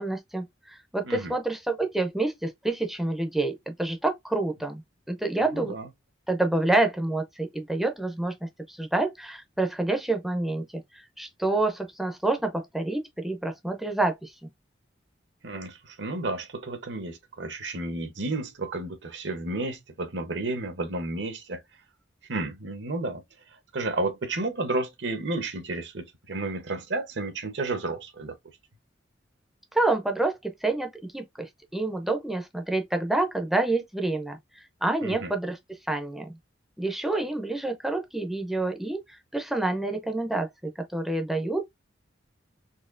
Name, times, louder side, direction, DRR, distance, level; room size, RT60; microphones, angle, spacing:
voice 1, 0.0-4.8 5.1-5.8 6.3-10.6 10.9-14.3 29.7-35.6 35.9-36.3 36.8-41.7, right 2 dB, ahead, 0.5 m, -28 dB
voice 2, 5.5-5.9 15.4-21.6 22.3-23.2 23.7-28.3 35.0-35.3, right 2 dB, 70° right, 0.9 m, -32 dB
4.2 x 2.7 x 2.5 m
head